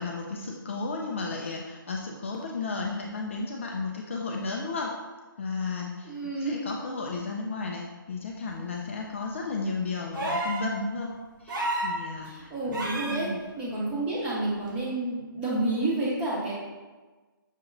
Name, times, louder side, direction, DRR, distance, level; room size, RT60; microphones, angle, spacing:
voice 1, 0.0-4.9 5.4-11.1 11.4-12.5 13.1-13.4, left 3 dB, 35° left, 0 dB, 0.3 m, -33 dB
voice 2, 6.0-6.5 12.2-13.3 13.6-16.5, right 2 dB, 10° right, -6 dB, 0.8 m, -29 dB
sound 1, 10.1-10.7 11.5-12.0 12.7-13.2 14.7-14.8, right 1 dB, 60° right, 1.1 m, -30 dB
6.2 x 2.8 x 2.5 m, 1.3 s
figure-of-eight pair, 150°, 12 cm